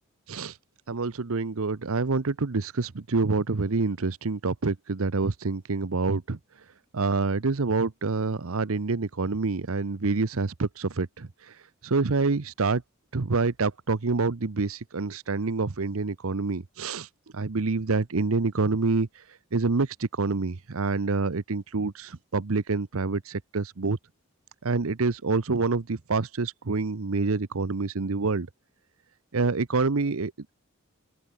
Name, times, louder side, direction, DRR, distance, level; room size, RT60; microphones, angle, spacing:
voice 1, 0.9-6.4 6.9-11.5 11.8-12.8 13.1-17.1 17.3-19.1 19.5-24.0 24.6-28.5 29.3-30.5, right 3 dB, 70° right, 0.8 m, -27 dB
open air
head